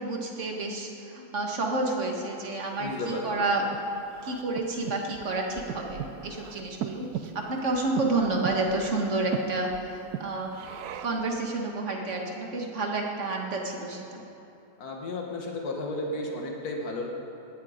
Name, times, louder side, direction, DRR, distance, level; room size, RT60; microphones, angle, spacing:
voice 1, 0.0-3.7 4.2-10.6 11.0-14.2, right 2 dB, 50° right, 0 dB, 2.0 m, -30 dB
voice 2, 2.8-3.4 14.8-17.1, left 2 dB, 70° left, 0 dB, 2.0 m, -33 dB
Breathing, 2.8-11.3, right 8 dB, 75° right, 1.2 m, -39 dB
18.5 x 11.5 x 5.2 m, 2.9 s
omnidirectional pair, 1.7 m